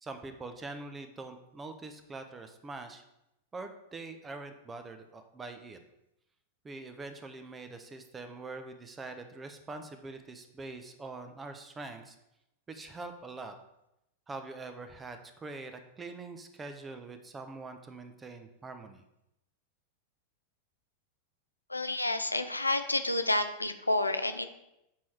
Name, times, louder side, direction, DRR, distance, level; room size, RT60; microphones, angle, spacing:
voice 1, 0.0-3.0 3.5-5.8 6.6-12.2 12.7-13.5 14.3-19.0, right 3 dB, 15° right, 8 dB, 0.8 m, -44 dB
voice 2, 21.7-24.5, left 2 dB, 85° left, 8 dB, 0.5 m, -29 dB
7.4 x 4.7 x 4.3 m, 0.85 s
figure-of-eight pair, 90°, 0 cm